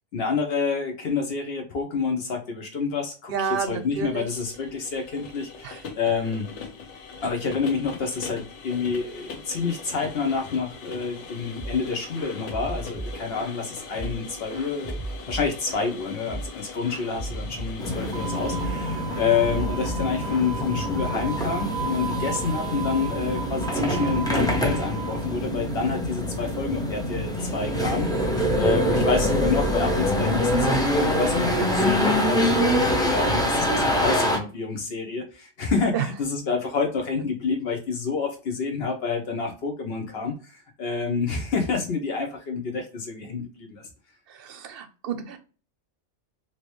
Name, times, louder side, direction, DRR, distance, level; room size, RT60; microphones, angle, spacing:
voice 1, 0.1-6.5 7.2-15.0 15.3-43.8, left 5 dB, 65° left, 3 dB, 0.9 m, -28 dB
voice 2, 3.3-4.3 5.6-5.8 35.9-36.0 44.3-45.4, right 7 dB, 65° right, 8 dB, 0.7 m, -30 dB
sound 1, 3.5-18.7, left 5 dB, 90° left, 1.1 m, -41 dB
sound 2, 11.6-11.9 12.2-13.6 13.9-15.9 16.3-16.6 16.8-18.2 18.5-18.8 19.1-21.2, right 1 dB, 30° left, 1.1 m, -36 dB
sound 3, 17.8-34.4, equal, 5° left, 0.4 m, -25 dB
3.1 x 2.8 x 3.0 m, 0.36 s
omnidirectional pair, 1.2 m